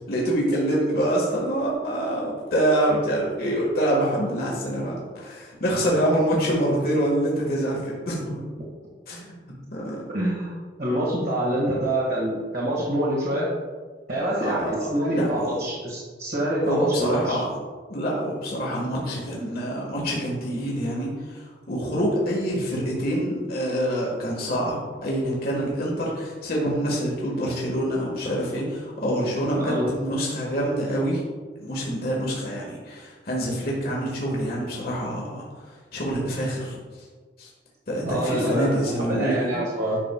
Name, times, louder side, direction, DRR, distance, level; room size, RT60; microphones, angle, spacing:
voice 1, 0.1-8.4 9.1-10.0 14.4-15.5 16.6-17.5 17.9-31.2 31.6-36.8 37.4-37.5 37.9-39.6, right 1 dB, 55° left, -3 dB, 1.4 m, -26 dB
voice 2, 10.1-10.5 10.8-13.5 14.1-17.4 29.5-29.8 38.0-38.8 39.1-40.0, right 1 dB, 60° right, -6 dB, 1.6 m, -26 dB
10.0 x 6.0 x 2.2 m, 1.4 s
head